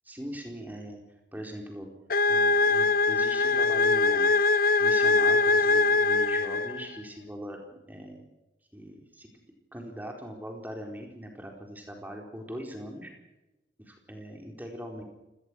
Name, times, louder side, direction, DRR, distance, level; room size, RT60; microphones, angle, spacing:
voice 1, 0.0-1.0 1.3-1.9 2.3-4.3 4.8-8.2 8.7-9.4 9.7-13.1 13.8-15.0, equal, 10° right, 2 dB, 4.3 m, -41 dB
sound 1, 2.1-7.0, left 3 dB, 50° left, 0.8 m, -23 dB
29.0 x 18.5 x 6.4 m, 1.0 s
head